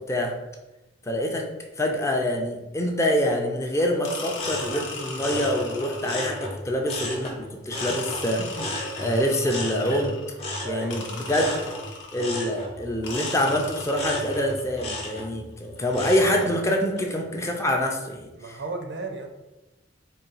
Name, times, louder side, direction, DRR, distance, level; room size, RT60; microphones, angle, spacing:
voice 1, 1.1-1.5 1.8-8.4 9.0-10.2 10.6-11.5 12.1-18.3, equal, 15° left, 2 dB, 0.4 m, -25 dB
sound 1, 4.0-6.6 7.8-10.4 10.9-12.5 13.0-14.7, left 3 dB, 90° left, 0.8 m, -38 dB
sound 2, 4.3-7.4 7.7-16.5 17.0-17.4, left 1 dB, 35° left, 0.9 m, -34 dB
voice 2, 8.4-8.8 10.6-11.7 18.3-19.3, right 3 dB, 70° right, 4 dB, 0.5 m, -35 dB
4.0 x 2.3 x 3.9 m, 1.0 s
head